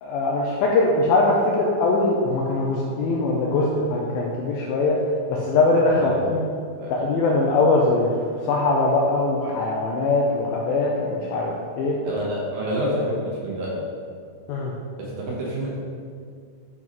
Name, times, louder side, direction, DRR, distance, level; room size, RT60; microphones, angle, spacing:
voice 1, 0.0-5.0 5.3-6.4 6.9-8.1 8.5-12.0 14.5-14.7, left 3 dB, 85° left, -2 dB, 2.1 m, -21 dB
voice 2, 12.0-13.2 13.4-13.8 15.0-15.7, equal, 65° right, -4 dB, 2.6 m, -27 dB
9.9 x 5.5 x 3.1 m, 2.2 s
omnidirectional pair, 4.9 m